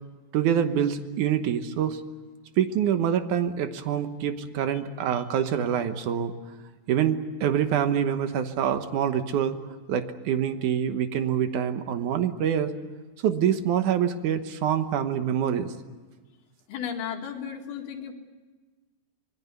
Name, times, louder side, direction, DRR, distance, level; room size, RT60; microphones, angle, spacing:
voice 1, 0.3-2.0 2.6-6.3 6.9-9.6 9.9-12.7 13.2-15.7, right 9 dB, 65° right, 9 dB, 2.3 m, -25 dB
voice 2, 16.7-18.1, left 8 dB, 80° left, 3 dB, 3.9 m, -34 dB
26.0 x 21.0 x 8.3 m, 1.3 s
omnidirectional pair, 4.3 m